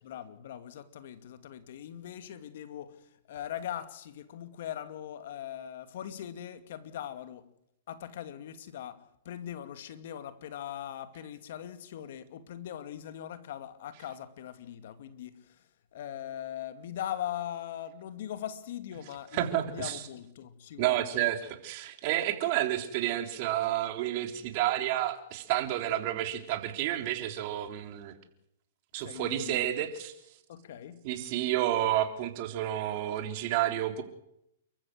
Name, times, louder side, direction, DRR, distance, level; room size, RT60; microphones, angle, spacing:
voice 1, 0.0-7.5 7.9-15.6 15.9-21.1 29.0-29.8 30.5-31.0, left 10 dB, 65° left, 2.3 m, -41 dB
voice 2, 19.3-20.0 20.8-28.1 28.9-30.1 31.0-34.0, right 13 dB, 50° right, 3.6 m, -30 dB
29.5 x 14.5 x 8.0 m
hypercardioid pair, 125°, 0 cm